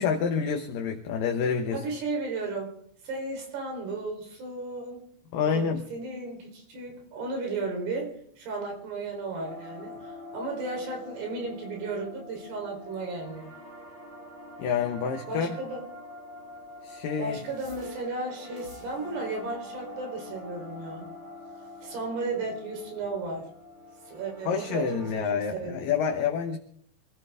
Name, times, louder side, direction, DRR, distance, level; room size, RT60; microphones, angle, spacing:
voice 1, 0.0-1.8 5.3-5.8 14.6-15.5 16.8-17.4 24.5-26.6, left 6 dB, 70° left, 3 dB, 2.4 m, -28 dB
voice 2, 1.7-2.7 3.0-5.1 5.4-13.5 15.3-15.9 17.2-21.1 21.8-23.5 24.1-25.8, right 3 dB, 75° right, 1 dB, 6.1 m, -34 dB
sound 1, 9.3-25.1, left 1 dB, 35° right, 5.3 m, -45 dB
25.5 x 15.0 x 3.6 m, 0.66 s
omnidirectional pair, 4.7 m